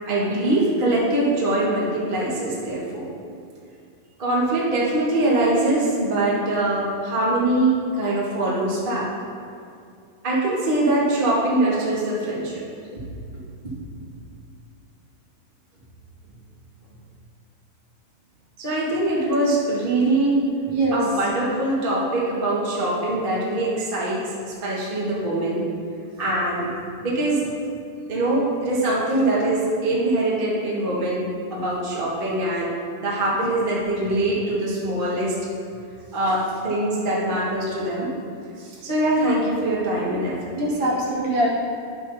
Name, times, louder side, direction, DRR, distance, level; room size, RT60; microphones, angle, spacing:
voice 1, 0.1-3.1 4.2-7.7 8.0-9.1 10.2-12.6 13.3-13.4 18.6-20.4 20.9-24.2 24.6-25.6 26.2-26.7 27.0-27.4 28.1-31.2 31.5-32.7 33.0-35.3 36.1-38.1 38.8-40.3, right 1 dB, 30° right, -7 dB, 1.0 m, -23 dB
voice 2, 20.7-21.0 38.6-38.8 40.5-41.5, right 1 dB, 65° right, -5 dB, 2.8 m, -23 dB
11.0 x 8.0 x 2.8 m, 2.4 s
omnidirectional pair, 3.6 m